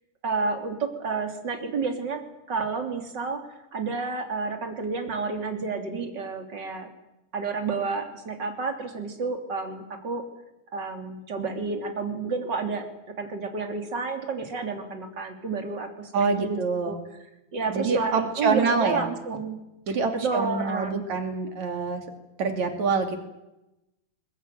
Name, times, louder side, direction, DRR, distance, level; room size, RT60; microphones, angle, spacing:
voice 1, 0.2-2.2 2.5-3.4 3.7-6.9 7.3-10.2 10.7-12.9 13.2-17.0 17.2-19.6 19.9-21.0, right 4 dB, 30° right, 5 dB, 3.4 m, -30 dB
voice 2, 16.1-17.0 17.7-19.1 19.9-22.0 22.4-23.2, right 4 dB, 55° right, 6 dB, 3.8 m, -26 dB
22.0 x 22.0 x 9.3 m, 0.93 s
omnidirectional pair, 4.0 m